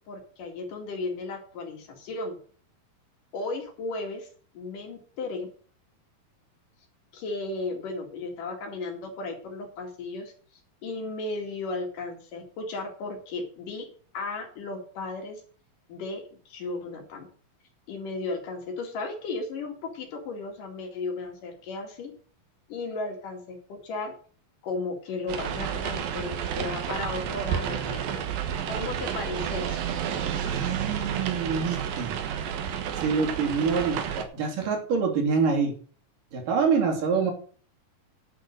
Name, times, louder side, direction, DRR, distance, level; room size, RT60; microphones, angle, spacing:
voice 1, 0.1-2.4 3.3-4.3 4.5-5.5 7.1-10.3 10.8-13.9 14.1-15.4 15.9-17.3 17.9-22.1 22.7-24.1 24.6-28.3 28.7-29.9, left 3 dB, 70° left, 2 dB, 3.8 m, -35 dB
sound 1, 25.3-34.2, right 8 dB, 90° right, 3.1 m, -31 dB
voice 2, 30.4-32.2 33.0-35.7 36.3-37.3, right 5 dB, 70° right, 1 dB, 4.3 m, -26 dB
11.0 x 6.5 x 6.7 m, 0.43 s
omnidirectional pair, 4.0 m